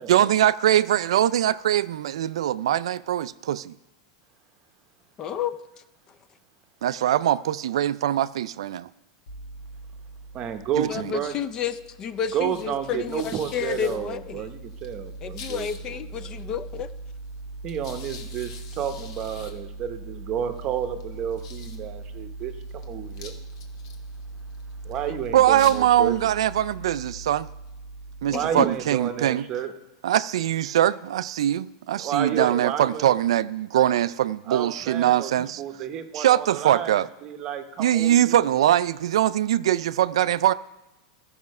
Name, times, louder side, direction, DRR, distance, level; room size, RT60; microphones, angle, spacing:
voice 1, 0.1-3.7 6.8-8.9 10.8-10.9 25.3-27.5 28.2-29.4 30.0-35.6 36.1-37.1 37.8-40.5, right 12 dB, 85° right, 0.3 m, -22 dB
voice 2, 5.2-5.6 10.9-14.5 15.2-16.9 25.1-25.2 28.3-28.7, left 8 dB, 25° left, 0.4 m, -31 dB
sound 1, 9.3-29.2, right 2 dB, 65° left, 1.3 m, -40 dB
voice 3, 10.3-11.3 12.3-15.7 16.2-16.5 17.6-23.3 24.8-26.2 28.3-29.7 32.0-33.1 34.5-36.9 37.2-38.7, right 9 dB, 30° right, 0.8 m, -31 dB
13.0 x 5.7 x 5.3 m
supercardioid pair, 160°, 3 cm